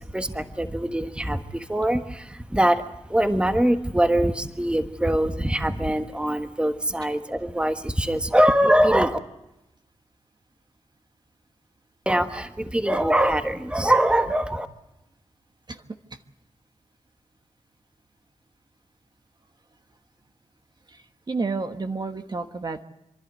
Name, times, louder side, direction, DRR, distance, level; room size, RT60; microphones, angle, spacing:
voice 1, 0.0-9.2 12.0-14.7, right 1 dB, 10° right, 7 dB, 1.3 m, -23 dB
voice 2, 20.9-22.8, right 3 dB, 40° right, 6 dB, 1.2 m, -31 dB
27.5 x 11.5 x 9.3 m, 0.94 s
cardioid pair, 80°, 11 cm